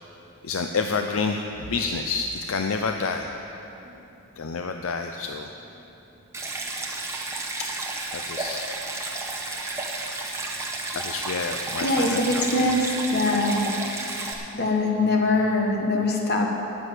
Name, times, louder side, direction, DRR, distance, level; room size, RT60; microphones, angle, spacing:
voice 1, 0.4-3.3 4.4-5.5 7.6-7.7 8.1-8.7 10.9-12.6, left 4 dB, 70° left, 5 dB, 0.5 m, -29 dB
Stream, 6.3-14.3, right 2 dB, 15° right, 0.9 m, -32 dB
voice 2, 11.8-13.7 14.5-16.5, left 2 dB, 45° left, 0 dB, 1.5 m, -23 dB
9.7 x 8.2 x 9.2 m, 3.0 s
head